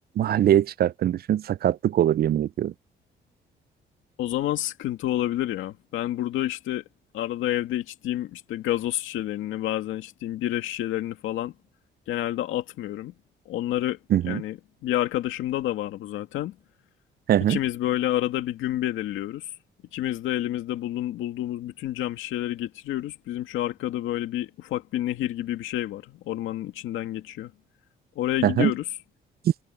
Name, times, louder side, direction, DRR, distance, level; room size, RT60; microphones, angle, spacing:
voice 1, 0.2-2.7 14.1-14.4 17.3-17.6 28.4-28.7, right 11 dB, 50° right, 0.4 m, -22 dB
voice 2, 4.2-6.8 7.1-11.5 12.1-13.1 13.5-16.6 17.5-19.5 19.9-27.5 28.2-28.9, left 13 dB, 90° left, 2.2 m, -29 dB
cardioid pair, 90°, 20 cm